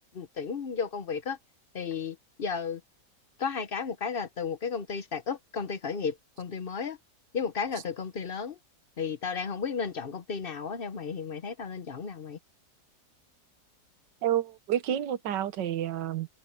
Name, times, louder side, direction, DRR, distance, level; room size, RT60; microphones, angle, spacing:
voice 1, 0.1-1.4 1.7-2.8 3.4-7.0 7.3-8.6 9.0-12.4, left 6 dB, 45° left, 0.8 m, -33 dB
voice 2, 14.2-16.3, right 11 dB, 85° right, 1.6 m, -29 dB
omnidirectional pair, 1.9 m